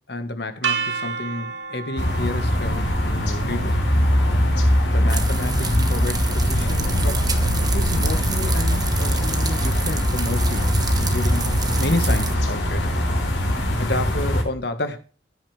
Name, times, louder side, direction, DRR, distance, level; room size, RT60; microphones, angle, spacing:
voice 1, 0.1-3.8 4.9-7.3 7.7-13.1 13.8-15.0, left 2 dB, 60° left, 1.6 m, -30 dB
sound 1, 0.6-6.6, right 5 dB, 75° right, 2.3 m, -33 dB
sound 2, 2.0-14.4, equal, 80° left, 4.0 m, -22 dB
sound 3, 5.1-12.4, right 2 dB, 20° right, 1.4 m, -26 dB
14.5 x 10.0 x 3.4 m
head